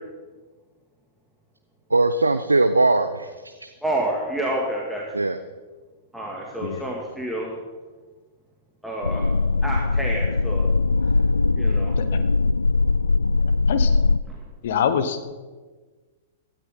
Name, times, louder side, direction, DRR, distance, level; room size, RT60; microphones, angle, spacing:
voice 1, 1.9-3.7 5.1-5.4, right 2 dB, 80° right, 9 dB, 0.6 m, -20 dB
voice 2, 3.8-5.2 6.1-7.6 8.8-9.3 9.6-10.7 11.6-11.9 14.3-14.4, right 1 dB, ahead, -4 dB, 2.1 m, -29 dB
sound 1, 9.0-14.2, left 3 dB, 75° left, 0.3 m, -21 dB
voice 3, 13.4-13.9 14.6-15.2, left 7 dB, 55° left, 10 dB, 1.2 m, -25 dB
17.0 x 13.0 x 3.8 m, 1.3 s
figure-of-eight pair, 105°, 0 cm